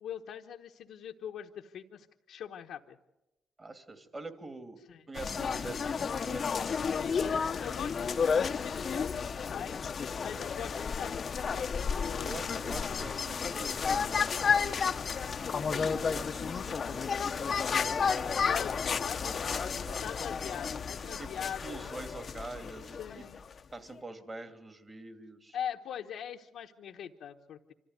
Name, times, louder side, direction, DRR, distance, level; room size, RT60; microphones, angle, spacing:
voice 1, 0.0-3.0 4.9-5.0 6.9-9.8 10.2-12.4 18.4-21.9 23.0-23.4 25.5-27.7, left 9 dB, 75° left, 1 dB, 1.1 m, -42 dB
voice 2, 3.6-4.8 5.1-6.6 10.3-10.5 12.2-14.9 15.7-18.3 19.2-20.0 21.0-23.2 23.7-25.6, right 2 dB, 30° right, 7 dB, 2.8 m, -46 dB
sound 1, 5.2-23.6, left 6 dB, 45° left, 0.8 m, -32 dB
25.5 x 14.5 x 9.5 m, 0.97 s
cardioid pair, 90°, 0 cm